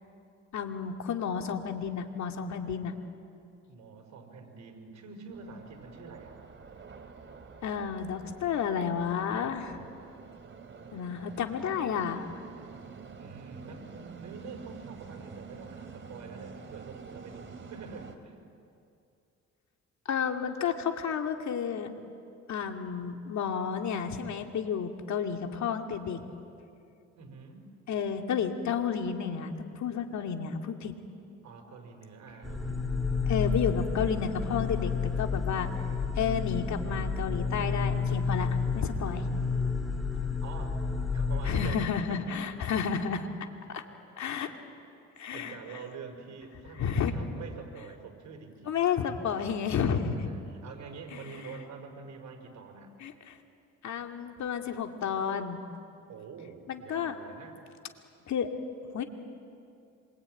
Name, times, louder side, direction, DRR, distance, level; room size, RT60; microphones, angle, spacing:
voice 1, 0.5-3.0 7.6-9.8 10.9-12.3 20.1-21.9 22.5-26.2 27.9-30.9 33.3-34.9 35.2-35.7 36.2-39.3 41.5-43.3 43.7-43.8 44.2-44.5 45.2-45.6 46.8-47.1 48.7-50.3 51.1-51.5 53.0-53.4 53.8-55.6 56.7-57.2 58.3-58.5 58.9-59.0, left 7 dB, 65° left, 5 dB, 2.4 m, -31 dB
voice 2, 3.7-6.4 13.2-18.4 27.1-27.7 31.4-32.9 40.4-40.8 41.1-42.2 44.4-44.6 45.3-48.8 50.1-52.9 56.1-57.6, right 5 dB, 65° right, 3 dB, 5.2 m, -46 dB
sound 1, 5.3-18.2, right 5 dB, 40° right, 2.8 m, -48 dB
sound 2, 32.4-41.7, left 5 dB, ahead, 3.1 m, -30 dB
26.5 x 24.0 x 9.3 m, 2.5 s
cardioid pair, 90°, 30 cm